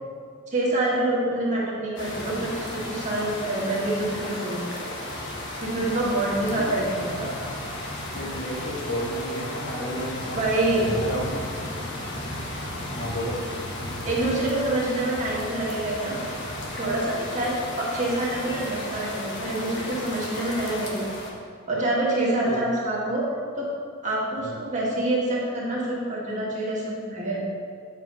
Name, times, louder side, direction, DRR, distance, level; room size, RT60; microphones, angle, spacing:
voice 1, 0.5-4.9 5.6-7.3 10.3-10.9 14.1-16.2 16.7-21.2 21.7-23.3 23.6-23.7 24.0-27.4, right 2 dB, 35° right, -5 dB, 1.7 m, -26 dB
sound 1, 2.0-21.3, left 1 dB, 55° left, 1.2 m, -34 dB
voice 2, 8.1-10.4 10.7-11.3 12.9-13.4 22.4-22.6 24.4-24.6, equal, 75° left, -2 dB, 1.5 m, -32 dB
7.9 x 4.7 x 5.4 m, 2.2 s
head